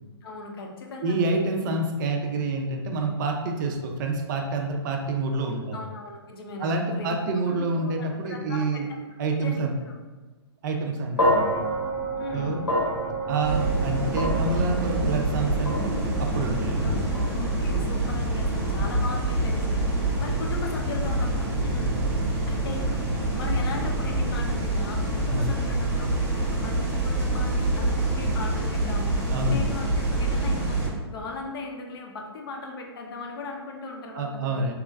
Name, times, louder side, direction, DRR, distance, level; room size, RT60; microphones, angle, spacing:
voice 1, 0.2-1.2 5.7-8.8 9.3-10.0 12.2-12.6 16.8-16.9 17.2-22.0 22.5-23.0 23.3-34.7, left 3 dB, 60° left, 2 dB, 0.5 m, -38 dB
voice 2, 1.0-5.8 6.6-8.9 9.2-9.8 10.6-11.5 12.3-12.6 13.3-17.0 25.3-25.6 29.3-29.8 34.1-34.7, right 3 dB, 45° right, 3 dB, 0.4 m, -27 dB
sound 1, 11.2-19.5, right 1 dB, 85° left, 1.0 m, -30 dB
sound 2, 13.4-30.9, right 1 dB, 10° right, 0.8 m, -26 dB
3.0 x 2.3 x 2.2 m, 1.3 s
hypercardioid pair, 125°, 14 cm